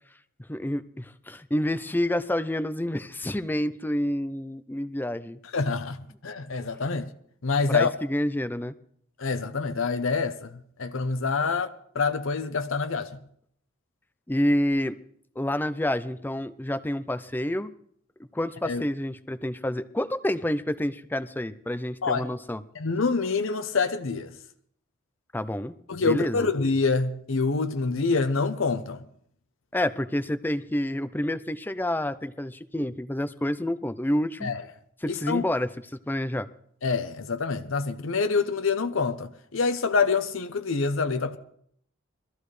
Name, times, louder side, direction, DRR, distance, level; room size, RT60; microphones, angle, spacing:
voice 1, 0.5-5.4 7.7-8.7 14.3-15.0 15.4-17.7 18.3-22.6 25.3-26.5 29.7-34.5 35.0-35.7 36.1-36.5, left 1 dB, 10° left, 0.5 m, -28 dB
voice 2, 5.5-6.0 6.2-7.1 7.4-7.9 9.2-11.7 11.9-13.2 18.6-18.8 22.0-22.3 22.7-24.3 25.9-29.0 34.4-34.6 35.1-35.4 36.8-41.4, left 4 dB, 75° left, 0.8 m, -26 dB
22.0 x 14.0 x 3.3 m
head